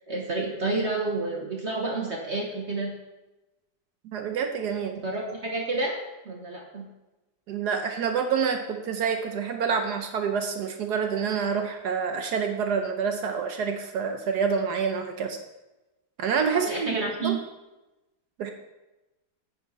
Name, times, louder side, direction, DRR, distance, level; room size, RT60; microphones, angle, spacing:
voice 1, 0.1-2.9 5.0-6.0 6.2-6.8 16.5-17.4, right 3 dB, 45° right, -1 dB, 1.3 m, -29 dB
voice 2, 4.0-5.0 7.5-15.4 16.2-17.0 17.2-17.4 18.4-18.5, right 6 dB, 70° right, 5 dB, 1.3 m, -27 dB
9.9 x 7.1 x 4.1 m, 1.0 s
omnidirectional pair, 1.9 m